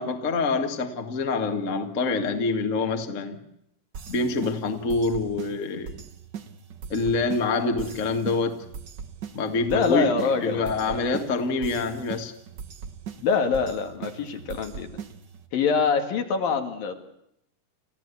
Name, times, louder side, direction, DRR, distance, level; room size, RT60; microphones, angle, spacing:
voice 1, 0.0-3.4 4.1-5.9 6.9-8.6 9.4-12.3, left 3 dB, 30° left, 6 dB, 1.7 m, -26 dB
sound 1, 3.9-15.5, right 7 dB, 80° right, 0.9 m, -40 dB
voice 2, 9.7-11.0 13.2-14.9 15.5-17.0, left 5 dB, 70° left, 5 dB, 3.8 m, -25 dB
29.5 x 15.0 x 8.4 m, 0.78 s
omnidirectional pair, 4.2 m